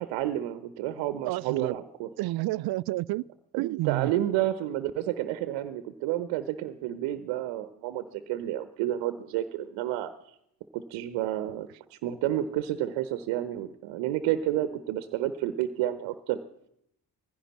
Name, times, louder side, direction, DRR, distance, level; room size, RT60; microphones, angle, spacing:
voice 1, 0.0-2.1 3.5-10.1 10.7-16.4, right 13 dB, 70° right, 0.9 m, -30 dB
voice 2, 1.3-1.8 2.2-3.3 3.6-4.1, right 18 dB, 55° right, 0.5 m, -29 dB
17.5 x 15.5 x 4.2 m
hypercardioid pair, 45°, 46 cm